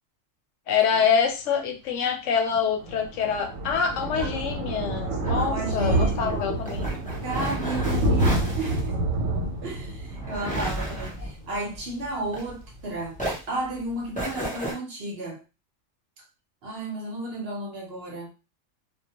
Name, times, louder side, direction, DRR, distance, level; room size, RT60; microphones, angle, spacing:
voice 1, 0.7-6.9, left 7 dB, 75° left, 4 dB, 0.9 m, -25 dB
Thunder, 2.5-11.9 12.2-12.5 12.8-12.9 13.1-13.2, right 1 dB, 80° right, 1.0 m, -28 dB
sound 1, 3.8-12.8 13.1-14.7, right 1 dB, 10° left, 0.4 m, -34 dB
voice 2, 5.3-6.4 7.2-8.9 9.6-13.2 13.5-15.4 16.6-18.3, right 2 dB, 55° right, -1 dB, 0.9 m, -33 dB
2.2 x 2.1 x 2.8 m, 0.31 s
omnidirectional pair, 1.3 m